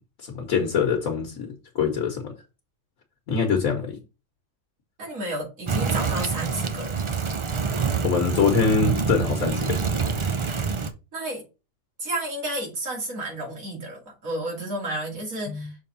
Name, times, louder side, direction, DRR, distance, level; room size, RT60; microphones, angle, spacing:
voice 1, 0.2-2.3 3.3-4.0 8.0-9.8 15.5-15.7, left 5 dB, 75° left, 1.6 m, -24 dB
voice 2, 5.0-7.0 10.5-10.6 11.1-11.4 12.0-15.8, right 1 dB, 75° right, 2.8 m, -31 dB
sound 1, 5.7-10.9, right 5 dB, 45° right, 0.4 m, -26 dB
6.5 x 3.5 x 4.1 m
omnidirectional pair, 1.5 m